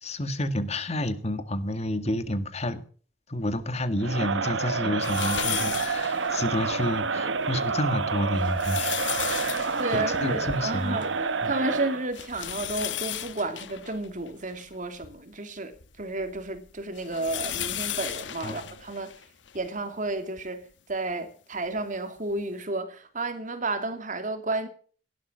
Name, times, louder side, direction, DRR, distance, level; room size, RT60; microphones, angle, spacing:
voice 1, 0.0-2.8 3.3-9.3 9.9-11.0 11.4-11.5 18.4-18.6, left 1 dB, 35° left, 1.9 m, -30 dB
Crowd, 4.0-12.1, right 4 dB, 85° right, 1.2 m, -28 dB
sound 1, 5.0-6.9 7.4-7.5 8.2-11.2 11.5-11.6 12.1-15.1 15.8-19.7 20.4-20.5 21.8-21.9, left 11 dB, 80° left, 1.2 m, -35 dB
voice 2, 9.8-15.7 16.0-19.1 19.5-24.7, right 2 dB, 45° right, 2.8 m, -32 dB
17.5 x 12.0 x 6.4 m
head